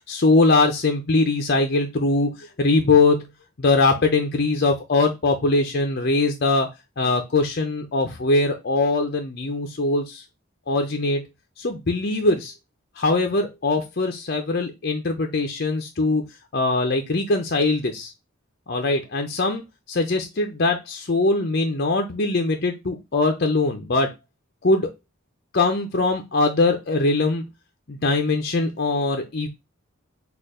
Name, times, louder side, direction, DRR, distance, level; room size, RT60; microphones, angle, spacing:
voice 1, 0.1-3.3 3.6-6.7 7.0-10.2 10.7-11.2 11.6-12.5 13.0-16.2 16.5-18.1 18.7-19.6 19.9-24.1 24.6-24.9 25.5-27.5 27.9-29.5, left 3 dB, 50° left, 0.6 m, -21 dB
4.4 x 2.5 x 4.8 m
head